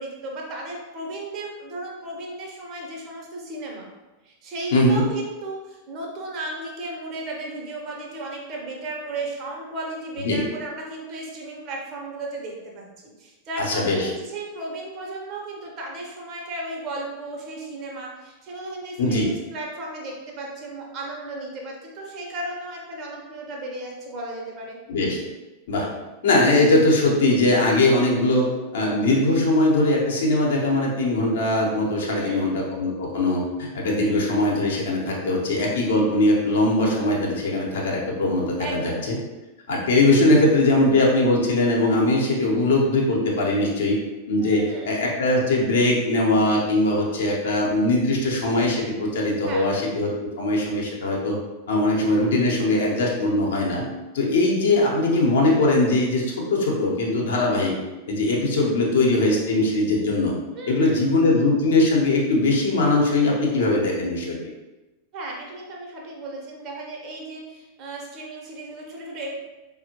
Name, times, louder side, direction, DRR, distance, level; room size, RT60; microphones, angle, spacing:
voice 1, 0.0-3.9 4.2-24.8 32.0-32.5 38.6-39.0 44.4-44.9 49.4-49.7 60.5-61.0 65.1-69.3, right 2 dB, 35° right, -1 dB, 0.8 m, -35 dB
voice 2, 4.7-5.0 10.2-10.4 13.6-14.1 19.0-19.3 24.9-25.2 25.7-25.9 26.2-28.5 28.7-39.2 39.7-44.0 44.3-51.4 51.7-53.8 54.1-57.7 58.1-60.3 60.7-64.4, left 2 dB, 60° left, -2 dB, 0.8 m, -21 dB
4.1 x 2.1 x 2.9 m, 1.1 s
figure-of-eight pair, 90°, 0 cm